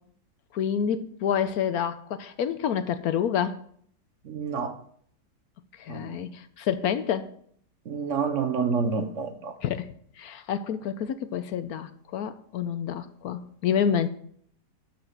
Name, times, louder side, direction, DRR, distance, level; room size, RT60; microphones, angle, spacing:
voice 1, 0.5-3.6 5.8-7.3 9.6-9.9 10.2-14.1, left 8 dB, 70° left, 12 dB, 1.0 m, -28 dB
voice 2, 4.3-4.7 5.9-6.2 7.9-9.5, right 5 dB, 55° right, 7 dB, 1.0 m, -28 dB
11.5 x 4.3 x 7.9 m, 0.63 s
omnidirectional pair, 1.8 m